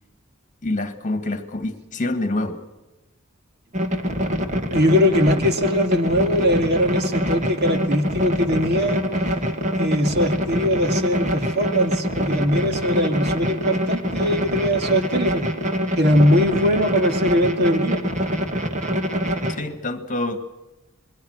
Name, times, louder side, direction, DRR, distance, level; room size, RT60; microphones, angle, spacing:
voice 1, 0.6-2.6 19.5-20.4, left 2 dB, 40° left, 9 dB, 1.9 m, -26 dB
sound 1, 3.7-19.6, equal, 35° right, 2.2 m, -25 dB
voice 2, 4.7-9.0 9.8-15.5 16.0-18.0, equal, 55° right, 6 dB, 2.1 m, -21 dB
26.5 x 22.0 x 6.5 m, 1.0 s
head